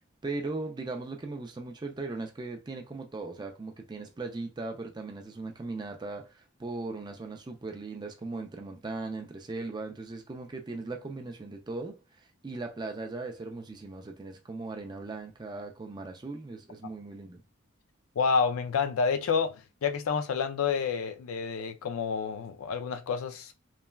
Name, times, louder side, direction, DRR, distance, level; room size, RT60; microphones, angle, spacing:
voice 1, 0.2-17.4, right 3 dB, 20° right, 0.3 m, -38 dB
voice 2, 18.2-23.5, left 5 dB, 80° left, 0.4 m, -29 dB
3.1 x 2.2 x 2.2 m
head